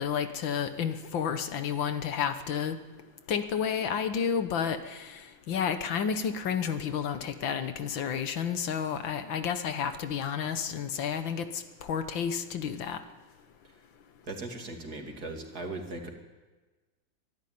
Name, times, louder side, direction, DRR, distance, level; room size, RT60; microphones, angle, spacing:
voice 1, 0.0-2.8 3.3-5.2 5.5-13.0, left 7 dB, 80° left, 9 dB, 2.0 m, -31 dB
voice 2, 14.2-16.1, right 2 dB, 50° right, 3 dB, 3.1 m, -38 dB
24.0 x 13.0 x 9.6 m, 1.3 s
omnidirectional pair, 2.1 m